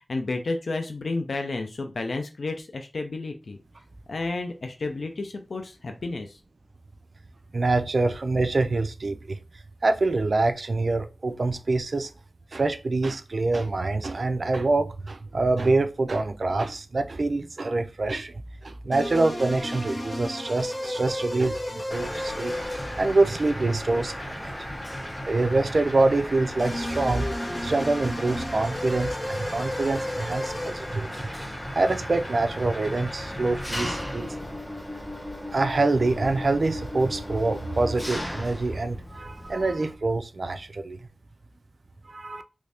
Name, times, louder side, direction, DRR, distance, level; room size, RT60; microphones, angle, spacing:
voice 1, 0.1-3.6 4.1-6.4, left 3 dB, 80° left, 0.5 m, -31 dB
voice 2, 7.5-9.4 9.8-12.1 12.5-22.6 23.0-24.5 25.2-27.3 27.6-31.3 31.6-34.3 35.5-41.1 42.0-42.4, right 3 dB, 65° right, 0.4 m, -25 dB
sound 1, 18.9-34.3, left 1 dB, 35° left, 1.5 m, -35 dB
Mechanisms, 21.9-39.9, left 1 dB, 10° left, 0.7 m, -36 dB
3.1 x 2.6 x 3.4 m
wide cardioid pair, 55°, 0 cm